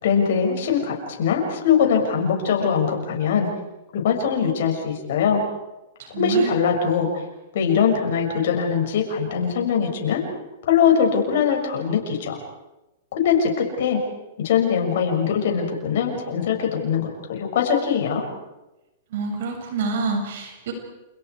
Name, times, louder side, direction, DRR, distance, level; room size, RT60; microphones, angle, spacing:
voice 1, 0.0-3.5 3.9-5.4 6.2-7.2 7.5-10.2 10.7-12.4 13.1-14.0 14.4-18.3, left 7 dB, 65° left, 2 dB, 6.7 m, -22 dB
voice 2, 6.0-6.5 19.1-20.7, right 4 dB, 65° right, 3 dB, 7.0 m, -27 dB
29.0 x 29.0 x 4.9 m, 0.99 s
hypercardioid pair, 120°, 0 cm